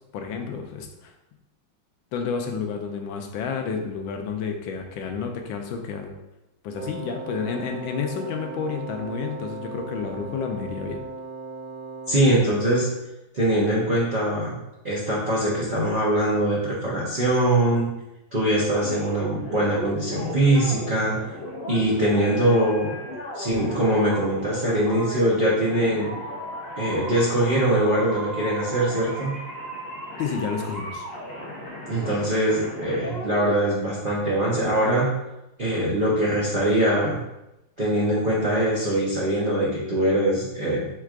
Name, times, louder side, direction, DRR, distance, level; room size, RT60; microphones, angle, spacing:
voice 1, 0.1-1.1 2.1-6.1 6.6-11.0 30.2-31.1, left 6 dB, 80° left, 4 dB, 1.3 m, -30 dB
Wind instrument woodwind instrument, 6.7-12.5, right 3 dB, 75° right, 1.4 m, -37 dB
voice 2, 12.1-12.9 13.3-14.6 14.8-17.9 18.3-21.2 21.7-22.9 23.3-26.1 26.7-29.3 31.9-35.1 35.6-37.2 37.8-40.9, right 1 dB, 40° right, -7 dB, 0.8 m, -22 dB
sound 1, 18.8-33.5, equal, 50° left, 0.7 m, -36 dB
4.6 x 4.5 x 2.4 m, 0.92 s
omnidirectional pair, 2.2 m